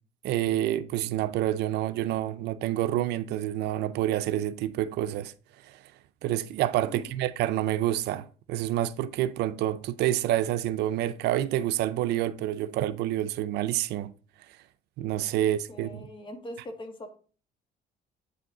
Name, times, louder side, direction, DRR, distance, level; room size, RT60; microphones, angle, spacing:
voice 1, 0.2-5.3 5.6-5.8 6.2-14.1 15.0-16.1, right 13 dB, 80° right, 0.5 m, -28 dB
voice 2, 15.3-17.2, left 1 dB, 30° left, 1.7 m, -42 dB
8.4 x 5.0 x 3.8 m
cardioid pair, 110°, 17 cm